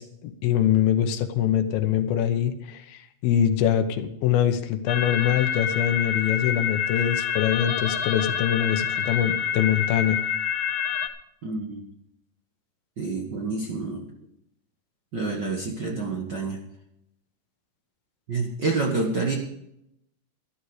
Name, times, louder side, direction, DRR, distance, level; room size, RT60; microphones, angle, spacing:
voice 1, 0.0-10.2, left 10 dB, 85° left, 7 dB, 2.9 m, -24 dB
sound 1, 4.9-11.1, left 8 dB, 65° left, 1.7 m, -27 dB
voice 2, 11.4-11.8 13.0-14.1 15.1-16.6 18.3-19.4, right 3 dB, 50° right, 0 dB, 1.3 m, -28 dB
13.0 x 12.5 x 4.9 m, 0.78 s
omnidirectional pair, 4.2 m